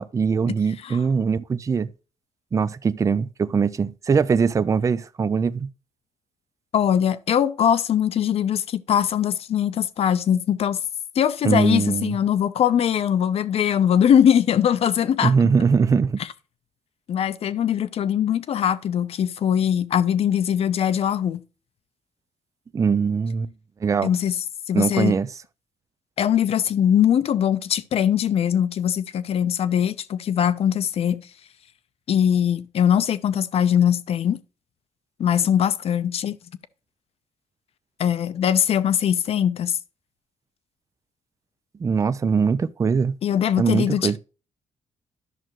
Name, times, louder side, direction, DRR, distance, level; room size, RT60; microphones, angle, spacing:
voice 1, 0.0-1.9 2.5-5.7 11.4-12.2 15.2-16.2 22.7-23.5 23.8-24.1 24.7-25.3 41.8-43.1 43.6-44.2, right 5 dB, 30° right, 0.5 m, -21 dB
voice 2, 6.7-10.8 11.2-15.3 17.1-21.4 24.0-24.3 24.7-25.1 26.2-31.2 32.1-34.4 35.2-36.4 38.0-39.8 43.2-44.2, left 9 dB, 60° left, 0.7 m, -21 dB
11.0 x 6.3 x 3.1 m
cardioid pair, 115°, 11 cm